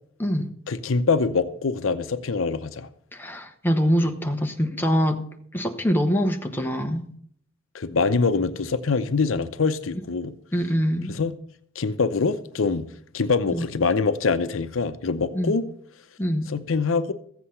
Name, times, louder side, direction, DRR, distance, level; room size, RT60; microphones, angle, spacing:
voice 1, 0.7-2.9 7.7-10.3 11.2-11.3 11.8-12.9 13.1-15.7 16.5-17.1, left 4 dB, 75° left, 0.7 m, -24 dB
voice 2, 3.1-5.2 5.5-7.1 10.5-11.2 13.5-13.7 15.3-15.6 16.2-16.5, equal, 10° left, 1.0 m, -24 dB
14.5 x 8.2 x 5.6 m
head